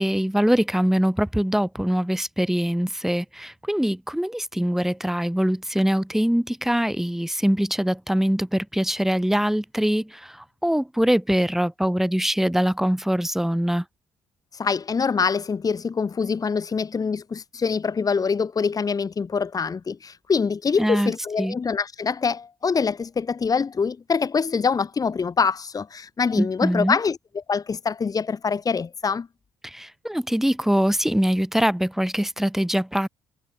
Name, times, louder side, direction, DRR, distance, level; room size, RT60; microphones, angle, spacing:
voice 1, 0.0-13.8 20.8-21.1 21.4-21.5 26.4-27.0 29.6-33.1, equal, 5° right, 3.2 m, -23 dB
voice 2, 14.5-29.3, left 5 dB, 35° left, 1.7 m, -25 dB
figure-of-eight pair, 45°, 11 cm